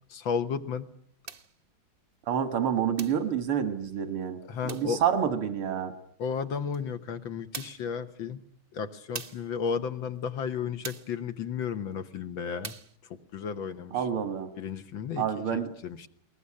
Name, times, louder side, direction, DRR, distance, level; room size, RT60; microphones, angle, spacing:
voice 1, 0.1-0.9 4.5-5.0 6.2-8.4 8.7-12.7 13.1-14.1 14.6-16.1, left 6 dB, 70° left, 9 dB, 1.9 m, -33 dB
sound 1, 1.3-1.6 3.0-3.3 4.7-5.0 6.7-6.8 7.5-7.9 9.1-9.5 10.8-11.2 12.6-13.0, right 5 dB, 35° right, 0.9 m, -41 dB
voice 2, 2.3-4.4 4.6-5.9 13.9-14.5 15.2-15.7, right 8 dB, 85° right, 10 dB, 2.7 m, -28 dB
21.5 x 19.5 x 9.8 m, 0.63 s
omnidirectional pair, 2.3 m